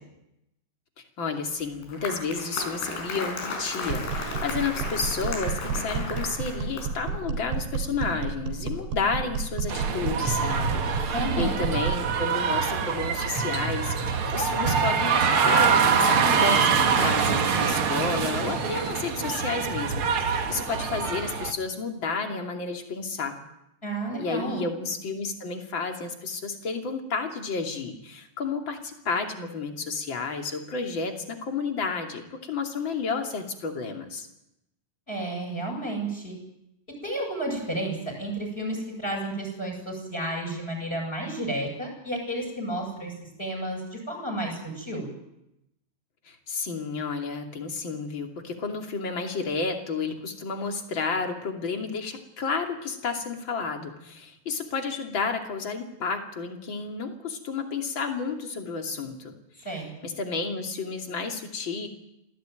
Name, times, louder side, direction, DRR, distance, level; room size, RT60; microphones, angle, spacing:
voice 1, 1.2-23.4 24.2-34.3 46.2-59.3 60.0-61.9, left 4 dB, 30° left, 3 dB, 2.8 m, -31 dB
Applause, 1.6-7.1, left 3 dB, 75° left, 7.4 m, -35 dB
sound 1, 3.9-12.1, right 5 dB, 85° right, 5.3 m, -31 dB
sound 2, 9.7-21.5, right 6 dB, 55° right, 1.5 m, -24 dB
voice 2, 11.1-11.6 23.8-24.6 35.1-36.4 37.0-43.1 43.4-45.1 59.6-59.9, right 1 dB, 15° left, 0 dB, 8.1 m, -31 dB
27.0 x 17.5 x 9.2 m, 0.85 s
omnidirectional pair, 4.9 m